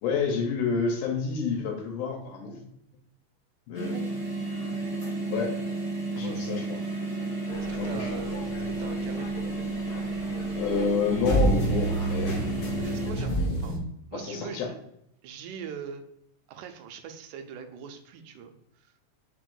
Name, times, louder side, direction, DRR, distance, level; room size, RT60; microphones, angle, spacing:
voice 1, 0.0-2.6 3.7-4.0 5.3-5.6 6.2-6.8 7.8-8.1 10.6-12.5 14.1-14.7, left 5 dB, 90° left, 0 dB, 2.4 m, -29 dB
sound 1, 3.7-13.1, right 2 dB, 35° right, 0.5 m, -32 dB
voice 2, 6.2-6.5 7.7-8.4 8.7-9.3 12.8-13.8 14.1-14.7 15.2-16.1 16.5-18.9, right 7 dB, 80° right, 7 dB, 2.0 m, -41 dB
sound 2, 7.5-13.8, right 1 dB, 70° left, 1.2 m, -30 dB
5.2 x 2.5 x 3.6 m, 0.74 s
omnidirectional pair, 3.7 m